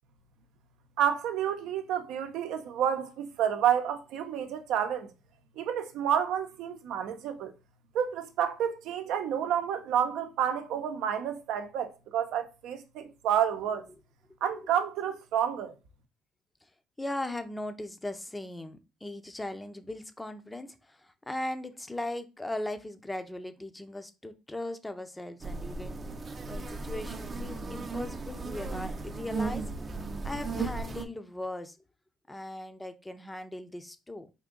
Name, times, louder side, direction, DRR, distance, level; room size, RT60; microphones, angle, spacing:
voice 1, 1.0-5.1 5.6-7.5 7.9-13.9 14.4-15.7, right 9 dB, 75° right, 0.6 m, -29 dB
voice 2, 17.0-26.0 26.4-29.6 30.2-31.8 32.3-34.3, left 1 dB, 15° left, 0.6 m, -38 dB
sound 1, 25.4-31.1, right 3 dB, 35° right, 0.6 m, -36 dB
3.6 x 2.6 x 3.7 m
supercardioid pair, 80°, 0 cm